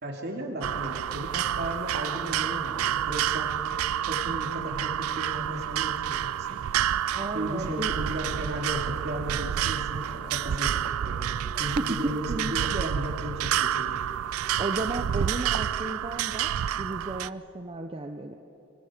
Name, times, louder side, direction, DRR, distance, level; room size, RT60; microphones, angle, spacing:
voice 1, 0.0-3.5 4.0-6.6 7.3-11.3 11.6-14.0, equal, 50° right, 2 dB, 2.7 m, -35 dB
sound 1, 0.6-17.3, right 10 dB, 90° right, 0.4 m, -29 dB
voice 2, 7.1-7.9 11.6-11.8 12.3-12.9 14.6-18.4, right 2 dB, 25° right, 5 dB, 0.7 m, -34 dB
25.0 x 22.5 x 5.1 m, 2.9 s
head